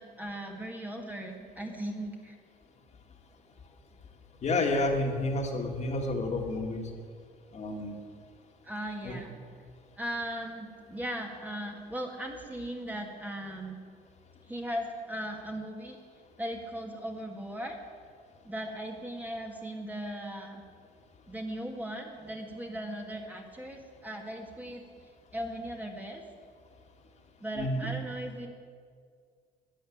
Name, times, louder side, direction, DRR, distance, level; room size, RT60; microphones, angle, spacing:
voice 1, 0.0-2.4 8.6-9.4 10.0-13.8 14.5-16.0 16.4-17.8 18.4-20.6 21.3-24.8 25.3-26.2 27.4-28.5, right 1 dB, 10° right, 1 dB, 1.9 m, -38 dB
voice 2, 4.4-6.8 7.5-7.9 9.0-9.2 27.6-27.9, left 2 dB, 40° left, 2 dB, 2.2 m, -30 dB
13.0 x 10.0 x 8.7 m, 2.1 s
cardioid pair, 110°, 17 cm